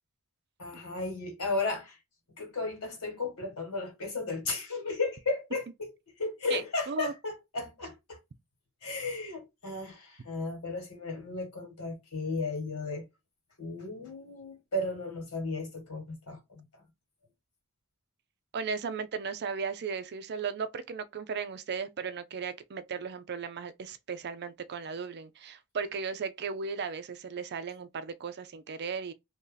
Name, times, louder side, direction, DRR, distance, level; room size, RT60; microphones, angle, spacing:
voice 1, 0.6-2.0 2.4-5.9 6.2-8.2 8.8-13.1 13.6-16.6, left 3 dB, 70° left, 1.9 m, -34 dB
voice 2, 6.5-7.1 18.5-29.1, right 5 dB, 50° right, 0.4 m, -36 dB
2.9 x 2.7 x 3.8 m
head